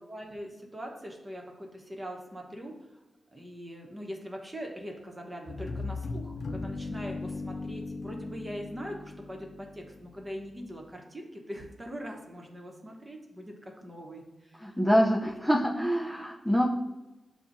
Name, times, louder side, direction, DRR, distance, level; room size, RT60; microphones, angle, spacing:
voice 1, 0.0-2.7 3.3-14.8 15.2-15.3, equal, 30° right, 1 dB, 1.0 m, -42 dB
sound 1, 5.5-10.3, left 3 dB, 70° left, 0.4 m, -38 dB
voice 2, 14.6-16.7, equal, ahead, -3 dB, 0.6 m, -25 dB
6.9 x 2.4 x 2.7 m, 1.0 s
cardioid pair, 45°, 0 cm